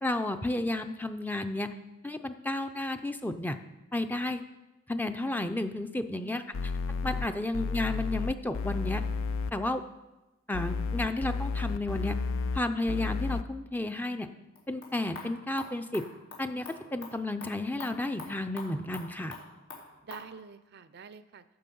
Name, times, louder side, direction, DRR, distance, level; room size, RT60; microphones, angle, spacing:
voice 1, 0.0-1.7 2.0-3.6 3.9-4.4 4.9-6.4 7.0-9.0 9.5-9.8 10.5-12.2 12.5-14.3 14.7-16.0 16.4-19.4, left 2 dB, 10° left, 8 dB, 0.5 m, -32 dB
voice 2, 6.0-6.5 7.2-7.4 20.0-21.4, right 5 dB, 50° right, 14 dB, 0.5 m, -47 dB
sound 1, 6.5-7.3 7.5-9.5 10.5-12.6 12.9-13.4, left 4 dB, 65° left, 0.4 m, -32 dB
sound 2, 14.6-20.3, left 3 dB, 80° left, 3.2 m, -47 dB
14.0 x 7.0 x 5.4 m, 1.1 s
head